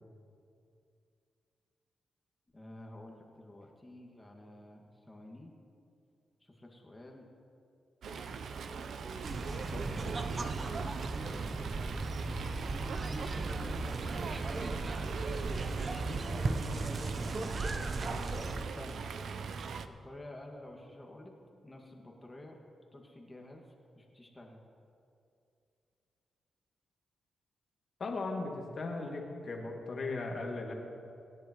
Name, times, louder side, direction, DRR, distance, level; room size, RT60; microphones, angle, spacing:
voice 1, 2.5-5.5 6.4-7.3 10.6-12.2 12.8-15.0 15.7-17.4 18.1-19.0 19.9-21.4 21.6-22.6 22.9-23.6 23.9-24.6, left 1 dB, 20° left, 0 dB, 1.9 m, -50 dB
Fowl, 8.0-19.9, right 5 dB, 70° right, 0.6 m, -41 dB
Bass guitar, 8.1-17.7, right 1 dB, 15° right, 3.7 m, -53 dB
sound 1, 9.2-18.6, right 3 dB, 40° right, 0.9 m, -36 dB
voice 2, 28.0-30.7, left 3 dB, 55° left, 0 dB, 2.2 m, -37 dB
25.5 x 10.5 x 3.1 m, 2.5 s
cardioid pair, 85°, 0 cm